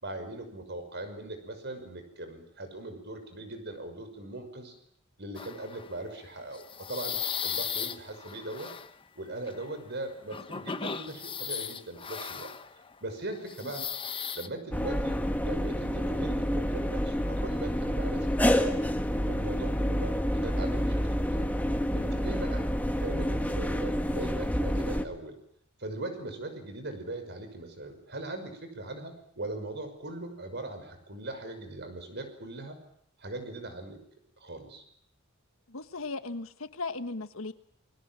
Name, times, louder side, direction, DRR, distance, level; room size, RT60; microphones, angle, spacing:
voice 1, 0.0-4.7 5.2-8.7 9.2-12.5 13.0-13.8 14.3-15.2 15.4-18.8 19.3-21.5 21.9-22.7 23.0-25.3 25.8-32.8 33.2-34.0 34.4-34.8, right 2 dB, 55° right, 8 dB, 5.8 m, -40 dB
sound 1, 5.3-5.9 6.5-8.9 9.5-9.7 10.3-12.9 13.4-14.5, left 7 dB, 25° left, 1.1 m, -36 dB
sound 2, 14.7-25.0, equal, 10° left, 1.7 m, -28 dB
voice 2, 35.7-37.5, left 3 dB, 75° left, 11 dB, 1.4 m, -37 dB
28.5 x 21.5 x 7.6 m, 0.67 s
head